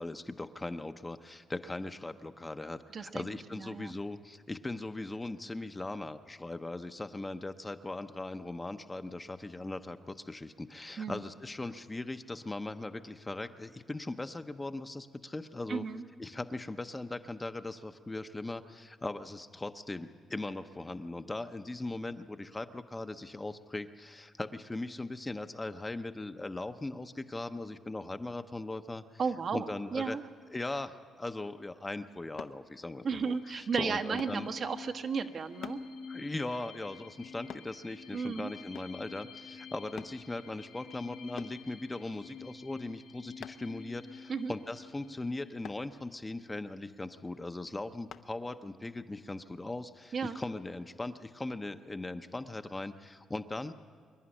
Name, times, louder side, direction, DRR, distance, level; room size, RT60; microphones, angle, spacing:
voice 1, 0.0-15.8 16.2-29.0 29.5-30.2 30.5-34.5 36.1-53.7, left 2 dB, 15° left, 8 dB, 0.7 m, -39 dB
voice 2, 2.9-3.9 11.0-11.2 15.7-16.0 29.2-30.2 33.0-35.8 38.1-38.5 44.3-44.5 50.1-50.4, right 5 dB, 55° right, 6 dB, 1.0 m, -34 dB
sound 1, 32.4-32.6 34.2-34.4 35.6-35.9 37.5-37.7 38.7-39.0 40.0-40.2 41.4-41.6 43.4-43.7 45.6-45.9 48.1-48.3 48.9-49.0, left 8 dB, 70° left, 0.7 m, -46 dB
sound 2, 33.2-46.5, left 5 dB, 85° left, 4.9 m, -49 dB
24.5 x 11.0 x 9.9 m, 2.1 s
cardioid pair, 90°, 0 cm